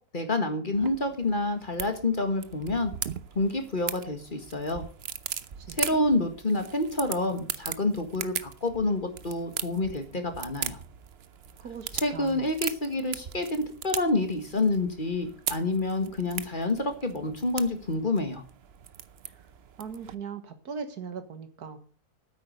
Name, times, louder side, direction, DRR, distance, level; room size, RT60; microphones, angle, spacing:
voice 1, 0.1-2.9 3.4-4.8 5.8-10.8 12.0-18.4, left 2 dB, 30° left, 6 dB, 1.9 m, -28 dB
sound 1, 0.7-20.1, right 9 dB, 55° right, 0.8 m, -39 dB
voice 2, 5.6-6.1 11.6-12.5 19.3-19.4 19.8-21.8, right 6 dB, 80° right, 9 dB, 2.0 m, -40 dB
9.6 x 8.5 x 7.9 m, 0.43 s
omnidirectional pair, 1.7 m